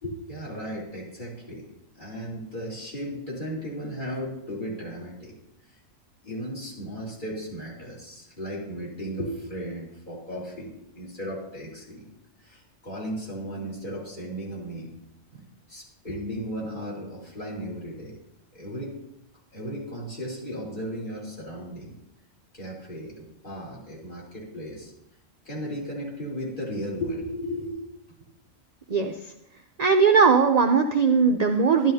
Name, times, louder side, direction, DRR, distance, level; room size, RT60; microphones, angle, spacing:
voice 1, 0.0-1.7 1.9-5.3 6.2-12.1 12.4-15.0 15.3-18.2 18.5-18.9 19.5-22.0 22.5-24.9 25.4-27.8, equal, 40° left, -3 dB, 3.1 m, -35 dB
voice 2, 29.8-31.9, right 5 dB, 60° right, 5 dB, 0.4 m, -19 dB
12.0 x 11.5 x 2.7 m, 0.82 s
omnidirectional pair, 1.4 m